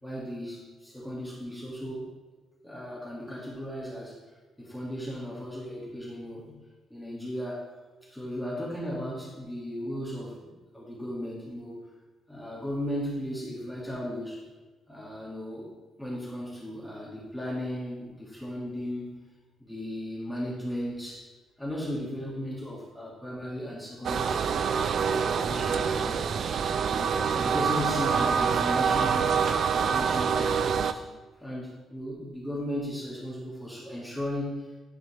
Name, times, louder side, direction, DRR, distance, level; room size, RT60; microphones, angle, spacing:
voice 1, 0.0-2.0 2.6-4.2 4.6-6.5 6.9-7.6 8.1-10.4 10.7-11.8 12.3-14.4 14.9-15.7 16.0-19.2 19.6-21.3 21.6-26.3 26.9-29.4 29.7-31.1 31.4-34.8, equal, 5° left, -7 dB, 2.0 m, -36 dB
sound 1, 24.0-30.9, right 6 dB, 60° right, 0.3 m, -26 dB
10.0 x 4.0 x 3.2 m, 1.3 s
cardioid pair, 90°, 0 cm